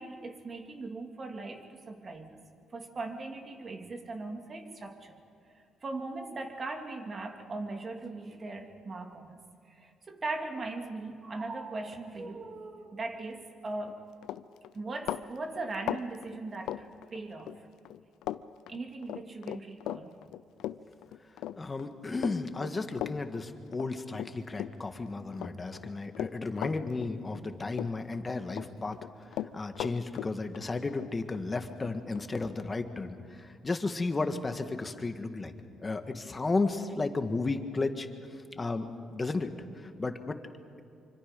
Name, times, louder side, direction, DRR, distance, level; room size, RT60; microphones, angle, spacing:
voice 1, 0.0-2.4 2.7-5.2 5.5-9.4 9.7-14.0 14.7-17.7 18.7-20.2, right 3 dB, 40° right, 4 dB, 2.7 m, -39 dB
Run, 13.7-13.9 14.2-17.6 17.9-18.4 18.7-25.0 25.3-27.5 27.7-28.7 28.9-32.3, left 13 dB, 85° left, 0.5 m, -38 dB
voice 2, 21.6-29.0 29.3-35.5 35.8-38.1 38.6-40.4, left 3 dB, 25° left, 7 dB, 1.7 m, -33 dB
26.0 x 25.5 x 5.4 m, 2.6 s
cardioid pair, 90°, 0 cm